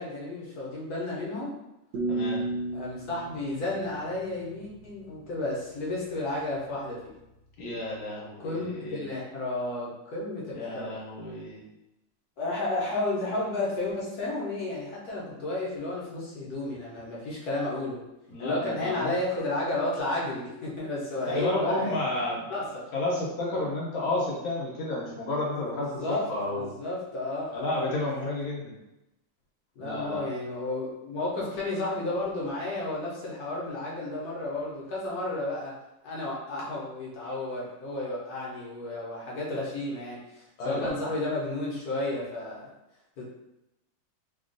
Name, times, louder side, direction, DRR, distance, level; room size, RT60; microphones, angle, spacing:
voice 1, 0.0-1.5 2.7-7.0 8.4-11.0 12.4-18.0 18.4-22.1 22.5-22.8 26.0-26.3 26.5-28.3 29.8-35.7 36.0-42.7 43.2-43.3, left 2 dB, 60° left, -5 dB, 1.1 m, -32 dB
sound 1, 1.9-4.9, right 2 dB, 75° right, 1.1 m, -33 dB
voice 2, 2.1-2.5 7.6-9.0 10.5-11.6 18.3-19.1 21.3-22.5 22.9-26.7 27.5-28.8 29.8-30.3 40.6-41.0, left 2 dB, 80° left, -4 dB, 1.5 m, -31 dB
3.4 x 2.3 x 2.5 m, 0.91 s
omnidirectional pair, 2.2 m